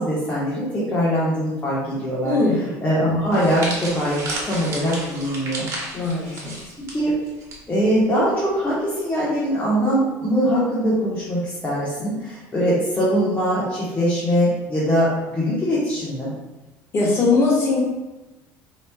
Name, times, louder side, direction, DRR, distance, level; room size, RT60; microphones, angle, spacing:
voice 1, 0.0-2.4 2.8-5.7 6.2-6.5 6.8-7.2 7.7-16.3, equal, 20° left, -8 dB, 1.2 m, -22 dB
voice 2, 2.2-2.6 5.9-6.7 16.9-17.8, left 3 dB, 40° left, -3 dB, 1.4 m, -20 dB
sound 1, 3.3-7.6 7.8-8.1 9.0-9.2, right 2 dB, 45° right, 1.3 m, -33 dB
4.9 x 3.1 x 2.3 m, 1.1 s
supercardioid pair, 110°, 7 cm